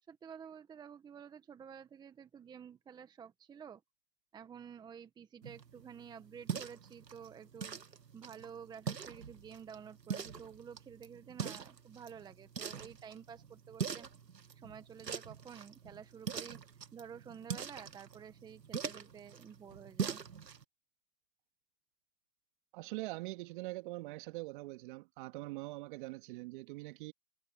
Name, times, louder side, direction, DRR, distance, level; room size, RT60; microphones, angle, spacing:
voice 1, 0.1-3.8 4.3-7.8 8.1-14.1 14.6-16.6 16.9-20.2, right 7 dB, 10° right, 1.5 m, -51 dB
sound 1, 5.4-20.6, right 6 dB, 85° right, 2.6 m, -43 dB
voice 2, 22.7-27.1, right 21 dB, 30° right, 2.2 m, -43 dB
hypercardioid pair, 140°, 49 cm